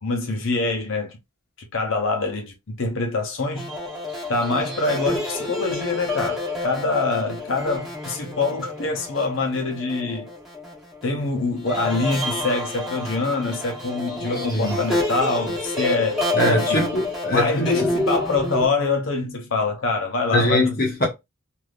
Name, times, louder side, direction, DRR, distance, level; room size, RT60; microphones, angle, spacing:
voice 1, 0.0-1.2 1.7-3.7 4.3-10.3 11.0-16.9 17.3-20.8, left 3 dB, 65° left, 0.7 m, -25 dB
sound 1, 3.5-11.1 11.6-18.7, left 2 dB, ahead, 1.3 m, -29 dB
voice 2, 14.2-14.8 16.3-17.8 20.3-21.1, left 1 dB, 40° left, 1.0 m, -22 dB
3.4 x 2.6 x 2.4 m
head